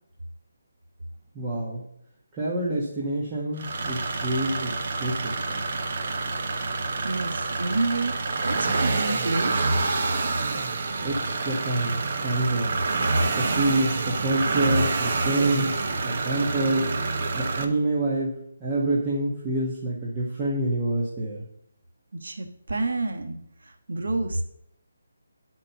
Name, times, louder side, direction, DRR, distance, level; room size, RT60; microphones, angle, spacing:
voice 1, 1.3-1.8 2.3-5.6 11.0-12.8 13.3-17.0 17.3-21.4, right 2 dB, 15° right, -6 dB, 1.4 m, -27 dB
sound 1, 3.6-17.6, right 3 dB, 45° right, 1.0 m, -27 dB
voice 2, 7.0-8.2 8.4-9.7 13.4-13.8 22.2-24.4, right 3 dB, 75° right, 4 dB, 1.2 m, -29 dB
9.5 x 4.5 x 7.0 m, 0.73 s
hypercardioid pair, 165°, 0 cm